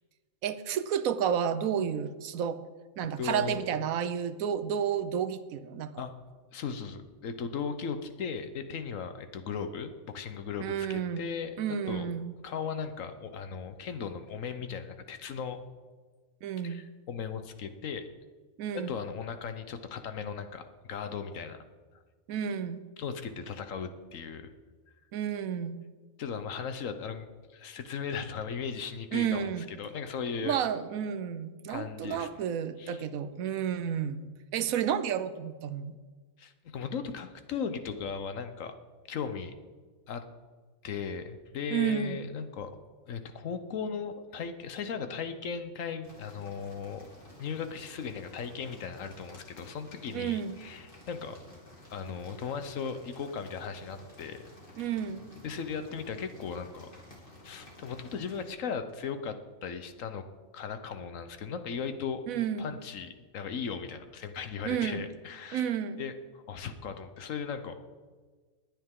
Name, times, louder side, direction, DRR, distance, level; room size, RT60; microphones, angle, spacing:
voice 1, 0.4-2.6 3.0-6.0 10.6-11.3 11.6-12.3 16.4-16.8 18.6-18.9 22.3-22.8 25.1-25.8 29.1-29.6 30.4-34.3 34.5-35.9 41.7-42.2 50.1-50.5 54.8-55.4 62.3-62.6 64.6-65.1 65.5-66.0, right 8 dB, 80° right, 12 dB, 1.1 m, -31 dB
voice 2, 3.2-3.6 6.0-6.1 6.5-12.1 12.4-15.6 16.6-18.1 18.7-20.6 20.9-21.6 23.0-24.5 26.2-30.6 31.7-32.3 32.8-33.1 36.4-38.8 39.1-39.5 40.1-40.2 40.8-42.7 43.1-47.1 47.4-51.4 51.9-54.4 55.4-56.9 57.4-60.2 60.5-62.2 62.6-65.7 66.0-67.8, left 6 dB, 70° left, 9 dB, 1.2 m, -37 dB
sound 1, 46.0-58.5, left 1 dB, 40° left, 2.9 m, -52 dB
20.5 x 8.9 x 3.7 m, 1.4 s
omnidirectional pair, 1.4 m